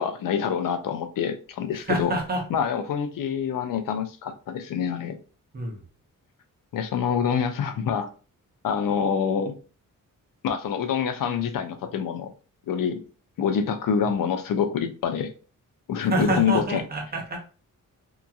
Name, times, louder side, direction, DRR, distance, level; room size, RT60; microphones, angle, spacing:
voice 1, 0.0-2.1 2.5-5.2 6.7-8.1 8.6-9.6 10.4-12.3 12.7-13.0 13.4-15.3 15.9-16.8, left 7 dB, 75° left, 0.5 m, -26 dB
voice 2, 1.7-2.4 5.5-5.8 16.1-17.4, right 2 dB, 30° right, 0.8 m, -27 dB
2.8 x 2.6 x 2.3 m
wide cardioid pair, 175°, 33 cm